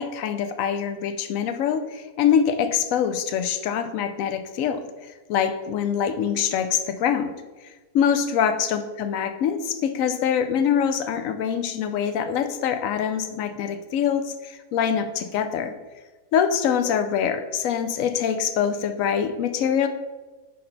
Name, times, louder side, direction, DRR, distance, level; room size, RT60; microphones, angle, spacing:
voice 1, 0.0-7.3 7.9-15.7 16.3-19.9, left 8 dB, 70° left, 9 dB, 0.9 m, -24 dB
5.7 x 5.3 x 3.9 m, 1.2 s
omnidirectional pair, 1.7 m